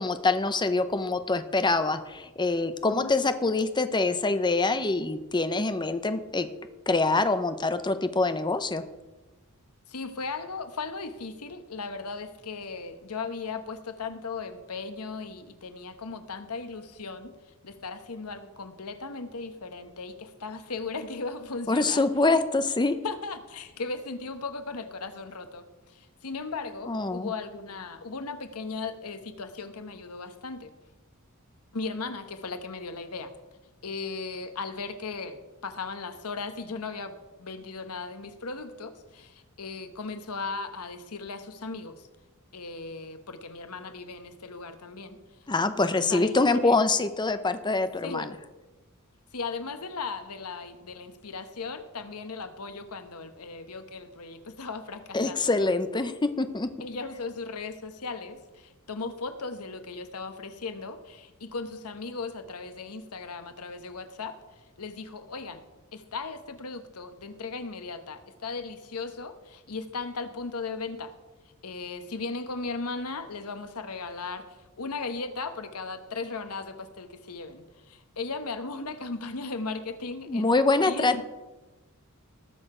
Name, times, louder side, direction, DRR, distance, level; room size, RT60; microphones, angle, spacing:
voice 1, 0.0-6.5 6.9-8.8 21.7-23.0 26.9-27.3 45.5-48.3 55.1-56.7 80.3-81.2, left 3 dB, 20° left, 10 dB, 0.7 m, -25 dB
voice 2, 9.9-17.3 17.6-22.0 23.0-30.7 31.7-33.3 33.8-37.1 37.4-42.1 42.5-45.2 46.1-46.8 48.0-48.3 49.3-55.5 56.8-64.3 64.8-65.7 65.9-71.1 71.6-80.5 80.9-81.2, left 4 dB, 85° left, 9 dB, 1.1 m, -37 dB
19.0 x 6.7 x 5.0 m, 1.2 s
head